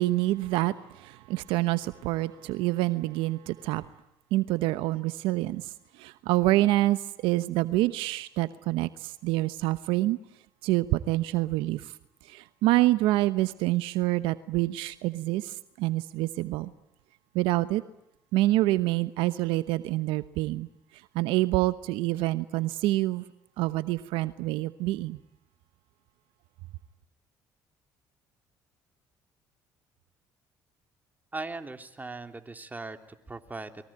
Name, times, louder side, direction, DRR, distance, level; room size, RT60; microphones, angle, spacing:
voice 1, 0.0-3.8 4.3-10.2 10.6-11.9 12.2-16.7 17.3-17.8 18.3-20.7 20.9-23.2 23.6-25.2, right 17 dB, 75° right, 1.0 m, -27 dB
voice 2, 31.3-33.0 33.3-33.7, right 3 dB, 20° right, 3.2 m, -38 dB
29.5 x 23.0 x 8.9 m
supercardioid pair, 65°, 9 cm